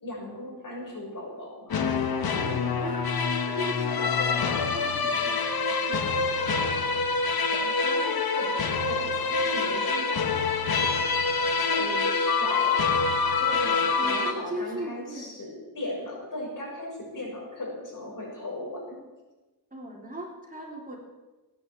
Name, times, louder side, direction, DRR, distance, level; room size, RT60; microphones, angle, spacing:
voice 1, 0.0-1.9 3.8-4.6 7.5-10.4 11.6-13.0 13.4-19.0, left 1 dB, 60° left, -2 dB, 6.8 m, -37 dB
sound 1, 1.7-14.3, left 4 dB, 80° left, 1.4 m, -26 dB
voice 2, 2.4-6.6 7.3-7.5 14.0-15.4 19.7-21.0, right 1 dB, 20° right, -1 dB, 3.5 m, -39 dB
17.5 x 9.7 x 8.3 m, 1.1 s
wide cardioid pair, 120°, 36 cm